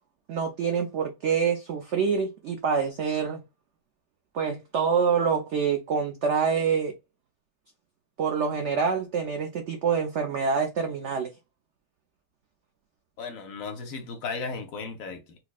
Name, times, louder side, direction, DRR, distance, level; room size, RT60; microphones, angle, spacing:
voice 1, 0.3-3.4 4.3-6.9 8.2-11.3, right 6 dB, 90° right, 0.6 m, -26 dB
voice 2, 13.2-15.4, left 4 dB, 65° left, 0.9 m, -35 dB
4.3 x 2.0 x 2.3 m
omnidirectional pair, 1.8 m